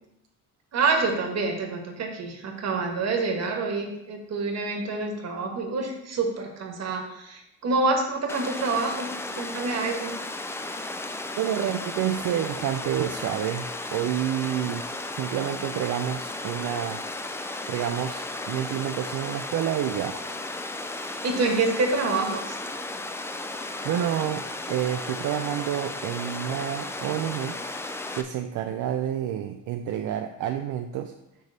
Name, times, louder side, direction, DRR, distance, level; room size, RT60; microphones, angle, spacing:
voice 1, 0.7-9.1 9.4-10.1 21.2-22.6, right 3 dB, 55° right, 2 dB, 1.4 m, -27 dB
Water, 8.3-28.2, left 2 dB, 10° left, 0.3 m, -35 dB
voice 2, 11.4-13.7 13.9-14.9 15.1-17.0 17.7-20.2 23.8-27.6 28.1-31.1, right 10 dB, 75° right, 6 dB, 0.5 m, -29 dB
6.7 x 3.5 x 6.1 m, 0.87 s
cardioid pair, 145°, 32 cm